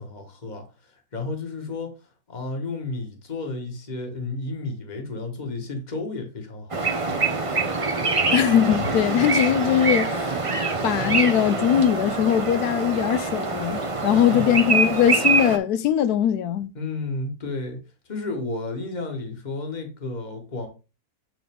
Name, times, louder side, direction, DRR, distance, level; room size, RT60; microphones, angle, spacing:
voice 1, 0.0-1.9 2.3-7.3 14.1-14.5 16.7-17.8 18.0-20.7, left 3 dB, 30° left, 1.5 m, -32 dB
sound 1, 6.7-15.6, right 3 dB, 30° right, 0.7 m, -24 dB
voice 2, 8.3-10.4 10.8-16.7, left 10 dB, 75° left, 1.1 m, -21 dB
9.2 x 3.9 x 3.6 m
omnidirectional pair, 1.7 m